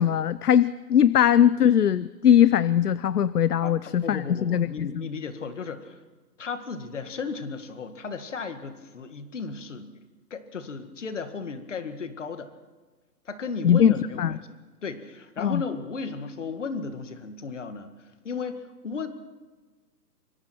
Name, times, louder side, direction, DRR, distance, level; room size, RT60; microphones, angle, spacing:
voice 1, 0.0-5.0 13.6-14.3 15.4-15.6, left 9 dB, 65° left, 18 dB, 0.7 m, -20 dB
voice 2, 3.6-6.0 6.4-9.9 10.3-12.5 13.3-17.9 18.2-19.1, left 4 dB, 45° left, 9 dB, 2.0 m, -35 dB
25.0 x 25.0 x 4.5 m, 1.3 s
hypercardioid pair, 175°, 50 cm